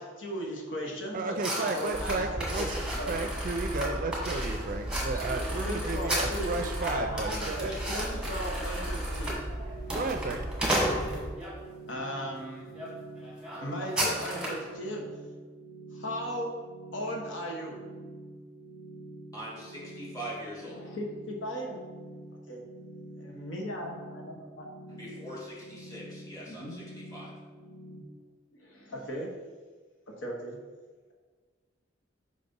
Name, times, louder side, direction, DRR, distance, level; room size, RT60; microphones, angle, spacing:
voice 1, 0.0-2.7 3.0-3.1 5.4-9.4 11.9-12.7 13.6-15.0 15.9-16.5 16.9-17.8 20.7-21.8 22.5-22.6 23.2-24.7 26.5-26.8 28.6-29.3 30.2-30.6, equal, 80° left, -1 dB, 1.2 m, -37 dB
voice 2, 1.1-2.7 3.0-7.8 9.9-10.4, right 3 dB, 45° right, 6 dB, 0.4 m, -33 dB
sound 1, 1.4-11.5 12.2-12.4 12.7-12.9 13.2-14.7, right 1 dB, 5° right, 1.3 m, -34 dB
sound 2, 1.9-11.3, right 1 dB, 45° left, 1.5 m, -36 dB
sound 3, 9.1-28.0, right 2 dB, 65° left, 0.9 m, -47 dB
voice 3, 19.3-20.8 24.9-27.3, equal, 20° left, -6 dB, 1.9 m, -42 dB
5.1 x 4.0 x 5.2 m, 1.4 s
head